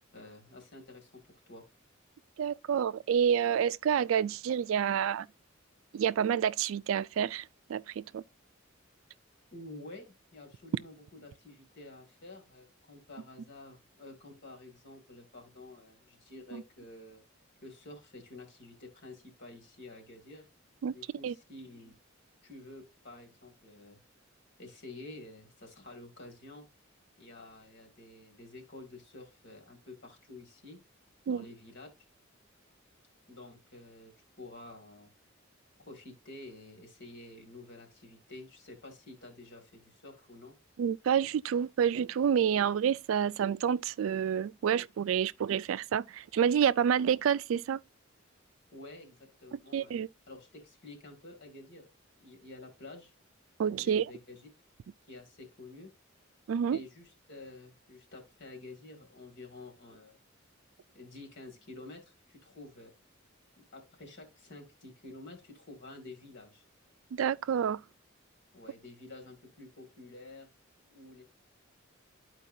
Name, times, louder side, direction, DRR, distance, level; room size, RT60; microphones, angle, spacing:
voice 1, 0.1-1.6 9.5-17.2 17.6-20.5 20.9-21.9 22.4-24.0 24.6-26.6 27.2-30.8 31.3-31.9 33.3-35.1 35.8-40.6 48.7-50.0 50.3-51.9 52.2-53.1 53.8-54.4 55.1-55.9 56.7-60.1 60.9-62.9 63.6-66.6 68.5-70.5 70.9-71.2, left 2 dB, 60° left, 2.3 m, -50 dB
voice 2, 2.4-5.3 5.9-8.2 16.5-16.6 20.8-21.0 21.2-21.3 31.3-31.4 40.8-47.8 49.7-50.1 53.6-54.1 56.5-56.8 67.1-67.8, right 8 dB, 75° right, 0.3 m, -28 dB
11.5 x 4.6 x 2.6 m
head